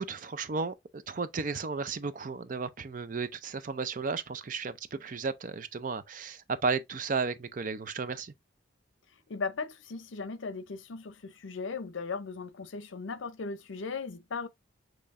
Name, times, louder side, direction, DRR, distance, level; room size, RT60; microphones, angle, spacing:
voice 1, 0.0-8.3, right 4 dB, 45° right, 0.5 m, -34 dB
voice 2, 9.3-14.5, left 4 dB, 80° left, 0.6 m, -37 dB
6.6 x 3.1 x 2.5 m
head